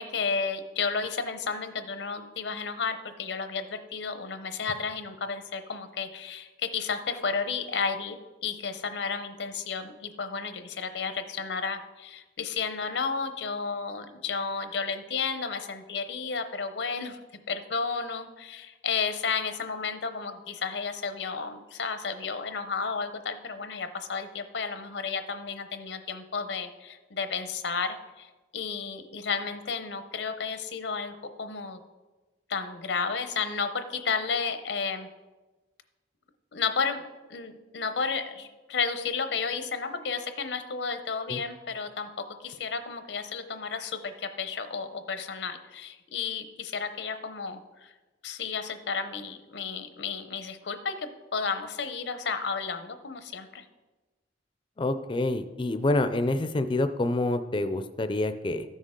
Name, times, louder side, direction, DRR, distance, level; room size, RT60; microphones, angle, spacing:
voice 1, 0.0-17.2 17.5-31.8 32.5-35.1 36.5-37.0 37.3-47.9 48.2-53.6, left 5 dB, 85° left, 9 dB, 0.7 m, -32 dB
voice 2, 54.8-58.6, left 2 dB, 30° left, 10 dB, 0.4 m, -27 dB
13.5 x 6.4 x 3.7 m, 1.2 s
head